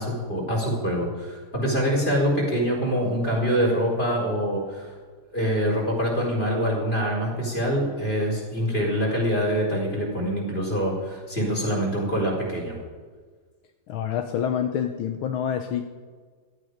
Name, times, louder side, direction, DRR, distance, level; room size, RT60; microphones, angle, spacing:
voice 1, 0.0-4.9 5.3-12.8, equal, 25° left, -1 dB, 4.7 m, -25 dB
voice 2, 13.9-15.9, left 8 dB, 75° left, 6 dB, 1.6 m, -27 dB
17.0 x 13.0 x 5.1 m, 1.5 s
omnidirectional pair, 2.4 m